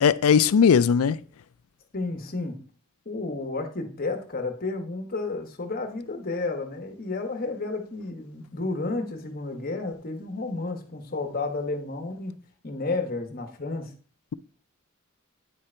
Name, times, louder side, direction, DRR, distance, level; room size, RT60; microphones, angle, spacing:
voice 1, 0.0-1.2, left 7 dB, 90° left, 0.4 m, -18 dB
voice 2, 1.9-2.6 3.0-12.3 12.6-13.9, left 3 dB, 45° left, 1.2 m, -31 dB
9.6 x 3.8 x 4.4 m
head